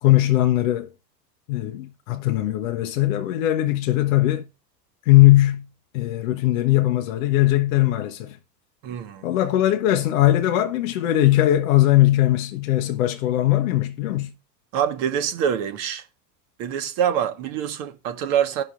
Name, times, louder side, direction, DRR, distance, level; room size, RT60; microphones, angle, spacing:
voice 1, 0.0-0.9 1.5-4.4 5.1-5.7 5.9-8.4 9.2-14.3, left 15 dB, 55° left, 0.7 m, -19 dB
voice 2, 8.8-9.3 14.7-16.0 16.6-18.6, right 9 dB, 45° right, 1.0 m, -25 dB
15.5 x 5.8 x 2.4 m
figure-of-eight pair, 85°, 50 cm